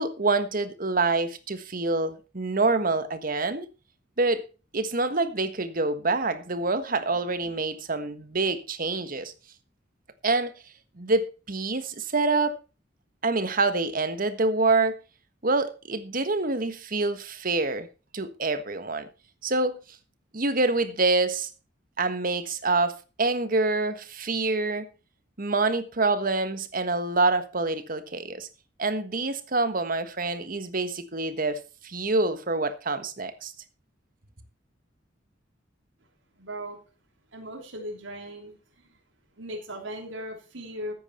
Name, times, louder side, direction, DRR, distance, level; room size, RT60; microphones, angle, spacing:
voice 1, 0.0-3.7 4.2-4.4 4.7-9.3 10.2-10.5 11.0-12.6 13.2-15.0 15.4-17.9 18.1-19.1 19.4-19.8 20.3-21.5 22.0-24.9 25.4-28.5 28.8-33.5, right 3 dB, 50° right, 1.4 m, -26 dB
voice 2, 36.4-36.8 37.3-38.9 39.4-40.9, equal, 85° right, 3.3 m, -38 dB
14.0 x 9.6 x 4.4 m
head